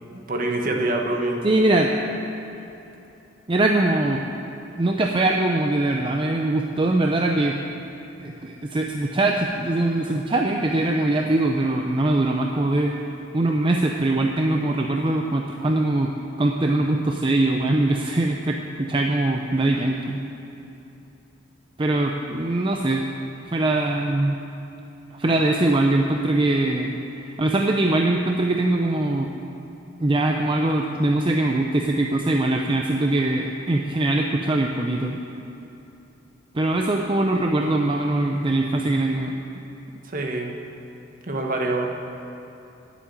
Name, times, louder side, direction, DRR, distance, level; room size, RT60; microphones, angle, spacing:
voice 1, 0.3-1.4 40.0-40.5 41.2-41.9, right 2 dB, 45° right, 1 dB, 1.4 m, -25 dB
voice 2, 1.4-1.9 3.5-4.2 4.8-7.6 8.2-12.9 13.3-16.1 16.4-20.2 21.8-23.0 23.4-24.4 25.1-26.9 27.4-29.3 30.0-35.2 36.5-39.3, right 2 dB, 25° right, 1 dB, 0.6 m, -22 dB
10.0 x 8.5 x 9.1 m, 2.9 s
head